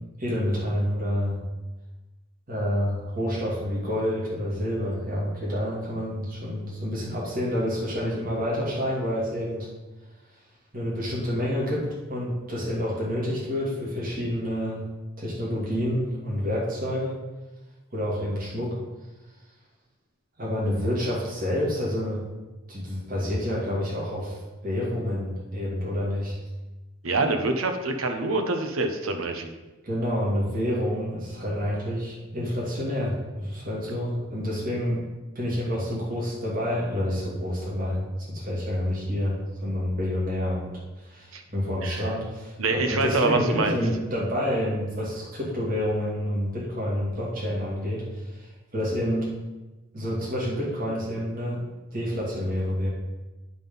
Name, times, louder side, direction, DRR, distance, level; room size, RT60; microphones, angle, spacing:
voice 1, 0.2-1.4 2.5-9.7 10.7-14.9 15.2-17.2 17.9-18.7 20.4-22.2 22.7-24.4 24.6-26.4 29.8-35.0 35.3-48.0 48.4-49.3 49.9-51.6 51.9-52.9, equal, 45° right, -6 dB, 2.4 m, -28 dB
voice 2, 27.0-29.5 41.3-41.4 41.8-42.0 42.6-43.8, right 3 dB, 85° right, 5 dB, 0.9 m, -25 dB
9.6 x 3.8 x 5.5 m, 1.1 s
head